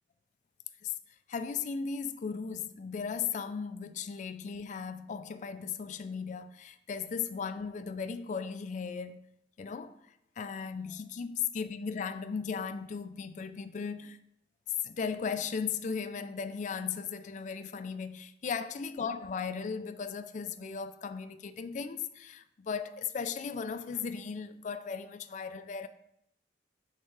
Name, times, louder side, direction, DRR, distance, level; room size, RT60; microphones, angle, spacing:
voice 1, 1.3-9.2 9.6-10.0 10.4-14.2 14.8-25.9, left 6 dB, 45° left, 0.3 m, -36 dB
6.4 x 3.6 x 4.6 m
head